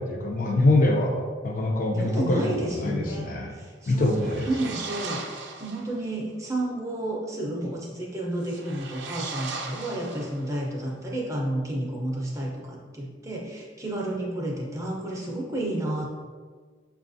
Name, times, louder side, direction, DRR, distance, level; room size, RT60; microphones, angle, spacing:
voice 1, 0.0-3.5 3.9-4.7, left 2 dB, 45° left, 0 dB, 0.5 m, -24 dB
voice 2, 1.9-4.2 4.5-5.2 5.6-16.1, right 1 dB, 15° right, -2 dB, 0.5 m, -31 dB
sound 1, 3.9-6.0 8.4-10.7, right 4 dB, 70° right, 0.4 m, -38 dB
5.9 x 2.3 x 2.6 m, 1.5 s
head